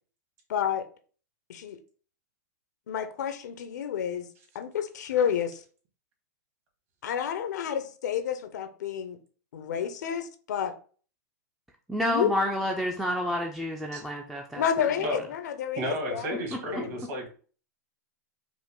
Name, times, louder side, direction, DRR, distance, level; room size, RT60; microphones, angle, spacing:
voice 1, 0.5-0.9 1.5-1.8 2.9-4.3 4.5-5.6 7.0-9.2 9.5-10.7 12.0-12.3 14.6-17.1, left 8 dB, 70° left, 0.6 m, -30 dB
voice 2, 11.9-14.6, left 1 dB, ahead, 0.4 m, -29 dB
voice 3, 15.8-17.3, equal, 50° right, 1.8 m, -32 dB
5.0 x 2.0 x 3.6 m
hypercardioid pair, 130°, 10 cm